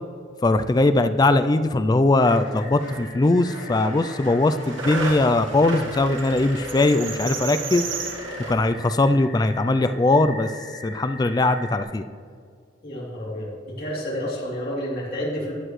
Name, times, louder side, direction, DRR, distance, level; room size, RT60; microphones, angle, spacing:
voice 1, 0.4-7.9 8.5-10.5 10.8-12.0, left 2 dB, 20° left, 10 dB, 0.3 m, -20 dB
sound 1, 1.9-2.0 2.2-3.0 3.4-8.5, right 3 dB, 80° right, 1.6 m, -33 dB
sound 2, 2.2-11.8, left 2 dB, 70° left, 3.1 m, -43 dB
voice 2, 12.8-15.5, equal, 50° left, -6 dB, 3.1 m, -30 dB
15.5 x 10.0 x 3.2 m, 2.2 s
head